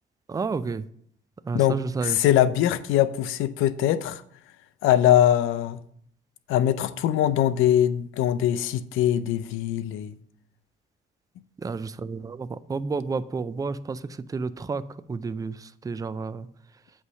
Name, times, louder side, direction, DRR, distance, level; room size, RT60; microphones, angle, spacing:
voice 1, 0.3-0.9 1.4-2.2 11.6-14.8 15.1-16.5, right 4 dB, 20° right, 0.4 m, -31 dB
voice 2, 2.0-4.2 4.8-5.8 6.5-10.2, left 11 dB, 90° left, 0.5 m, -22 dB
8.3 x 3.2 x 6.1 m
cardioid pair, 90°, 20 cm